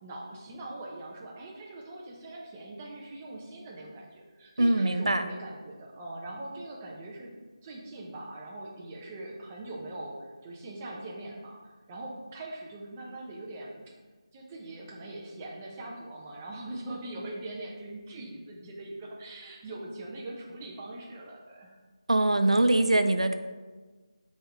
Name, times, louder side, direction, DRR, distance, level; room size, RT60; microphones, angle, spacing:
voice 1, 0.0-7.3 7.6-13.9 14.3-21.7, right 2 dB, 20° right, -2 dB, 0.8 m, -42 dB
voice 2, 4.6-5.3 22.1-23.3, right 1 dB, 90° right, 8 dB, 0.5 m, -23 dB
5.4 x 3.5 x 5.7 m, 1.3 s
figure-of-eight pair, 165°, 3 cm